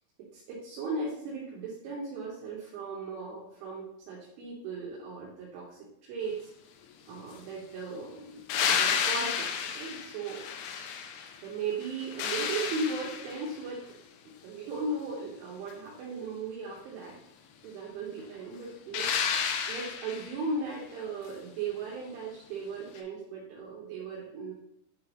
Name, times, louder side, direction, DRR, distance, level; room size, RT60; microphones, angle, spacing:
voice 1, 0.3-6.5 7.1-10.5 11.4-13.8 14.4-17.2 17.6-19.3 19.7-24.5, right 3 dB, 75° right, -5 dB, 3.4 m, -37 dB
sound 1, 8.5-11.4 11.8-13.6 18.9-20.4 23.0-23.1, left 7 dB, 85° left, 3.2 m, -31 dB
9.7 x 3.7 x 3.0 m, 0.80 s
omnidirectional pair, 6.0 m